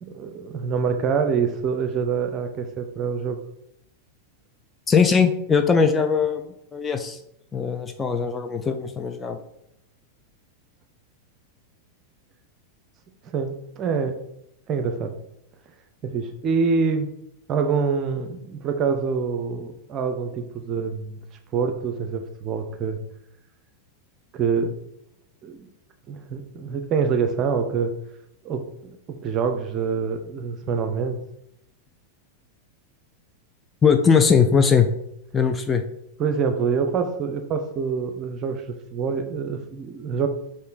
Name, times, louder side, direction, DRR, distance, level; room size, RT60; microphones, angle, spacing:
voice 1, 0.0-3.4 13.2-14.2 14.7-15.1 16.0-17.1 17.5-21.2 21.5-23.0 24.3-24.7 25.4-25.7 26.1-27.9 28.4-31.2 36.2-40.3, right 5 dB, 35° right, 6 dB, 0.6 m, -26 dB
voice 2, 4.9-6.5 6.7-7.2 7.5-9.4 33.8-34.9 35.3-35.8, left 6 dB, 15° left, 6 dB, 0.4 m, -20 dB
5.3 x 2.6 x 3.8 m, 0.79 s
figure-of-eight pair, 90°, 0 cm